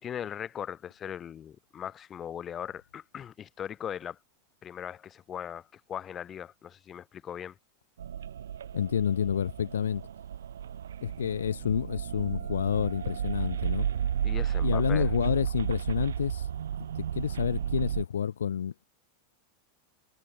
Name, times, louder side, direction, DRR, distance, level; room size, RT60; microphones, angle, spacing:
voice 1, 0.0-4.2 4.6-7.6 14.2-15.1, left 9 dB, 30° left, 2.4 m, -39 dB
sound 1, 8.0-18.1, right 9 dB, 85° right, 0.7 m, -33 dB
voice 2, 8.7-10.0 11.0-13.9 14.6-16.5 17.2-18.9, left 8 dB, 90° left, 0.9 m, -29 dB
hypercardioid pair, 110°, 0 cm